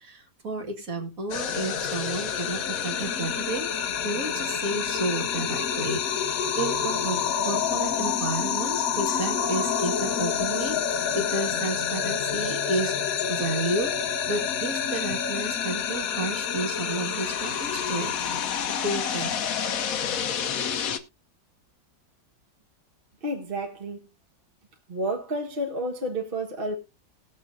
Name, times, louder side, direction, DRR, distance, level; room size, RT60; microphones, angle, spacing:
voice 1, 0.0-18.5 18.8-19.4, right 2 dB, 50° right, 2.1 m, -32 dB
sound 1, 1.3-21.0, left 7 dB, 60° left, 1.1 m, -28 dB
Glass, 9.1-10.5, left 7 dB, 85° left, 1.8 m, -46 dB
voice 2, 23.2-24.1 24.9-26.7, right 1 dB, 35° right, 1.4 m, -30 dB
19.5 x 7.0 x 2.6 m
omnidirectional pair, 1.9 m